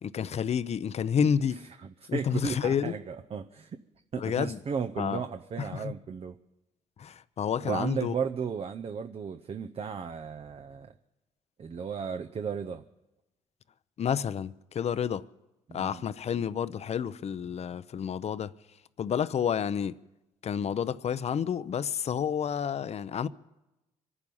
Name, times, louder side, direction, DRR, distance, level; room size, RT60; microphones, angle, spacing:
voice 1, 0.0-1.6 2.1-3.0 4.2-4.6 5.0-5.2 5.7-5.9 7.0-8.1 14.0-15.3 15.7-18.5 19.0-20.0 20.4-23.3, left 8 dB, 50° left, 0.6 m, -30 dB
voice 2, 1.1-1.5 1.8-3.8 4.1-6.4 7.6-10.9 11.6-12.9 15.7-16.0, right 6 dB, 45° right, 0.7 m, -35 dB
24.5 x 9.9 x 5.5 m
supercardioid pair, 65°, 14 cm